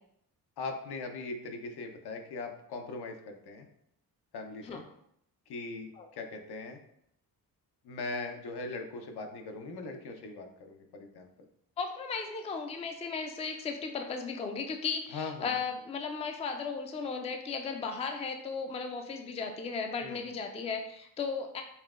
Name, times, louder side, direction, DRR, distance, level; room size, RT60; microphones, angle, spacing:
voice 1, 0.6-3.7 4.3-4.8 5.5-6.8 7.8-11.3 15.1-15.5 20.0-20.2, left 3 dB, 80° left, 4 dB, 0.7 m, -40 dB
voice 2, 11.8-21.6, left 5 dB, 20° left, 5 dB, 0.3 m, -36 dB
5.6 x 2.1 x 2.4 m, 0.74 s
cardioid pair, 90°, 39 cm